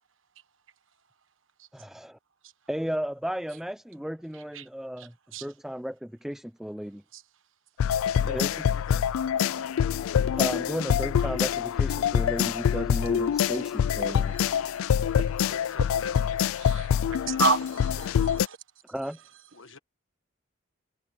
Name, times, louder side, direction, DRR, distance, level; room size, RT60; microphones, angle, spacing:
voice 1, 1.7-2.2 2.7-5.1 5.4-7.0 8.3-8.6 10.4-14.4 18.9-19.2, equal, ahead, 0.4 m, -34 dB
sound 1, 7.8-18.5, left 8 dB, 90° left, 0.3 m, -25 dB
voice 2, 8.1-9.7 15.4-16.2 19.5-19.8, left 5 dB, 65° left, 1.4 m, -44 dB
voice 3, 17.3-18.6, right 3 dB, 70° right, 1.3 m, -28 dB
head